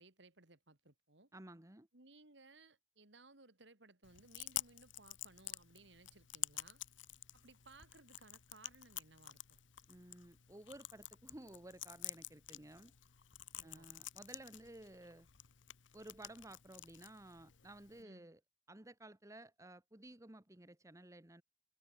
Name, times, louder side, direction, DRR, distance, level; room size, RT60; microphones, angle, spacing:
voice 1, 0.0-1.3 1.9-6.8 7.3-9.6 13.5-13.9 18.0-18.2, right 3 dB, 70° right, 3.0 m, -62 dB
voice 2, 1.3-1.9 9.9-12.9 13.6-15.3 15.9-18.4 18.7-21.4, right 1 dB, 15° right, 1.3 m, -55 dB
Chewing mastication, 4.0-18.0, left 14 dB, 85° left, 1.2 m, -49 dB
head